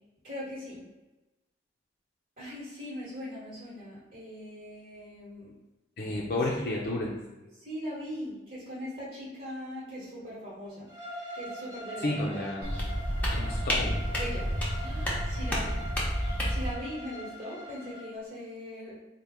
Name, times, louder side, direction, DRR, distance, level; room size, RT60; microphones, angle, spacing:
voice 1, 0.2-0.8 2.4-5.6 7.5-10.9 11.3-12.5 14.1-14.5 14.7-15.9 16.5-18.9, equal, 45° right, -9 dB, 1.2 m, -40 dB
voice 2, 6.0-7.1 12.0-12.8 13.3-14.1, left 2 dB, 55° left, -3 dB, 0.5 m, -31 dB
Bowed string instrument, 10.9-18.1, equal, 20° right, 0.8 m, -43 dB
sound 1, 12.6-16.7, equal, 10° left, 0.7 m, -30 dB
4.3 x 2.2 x 3.5 m, 1.1 s
head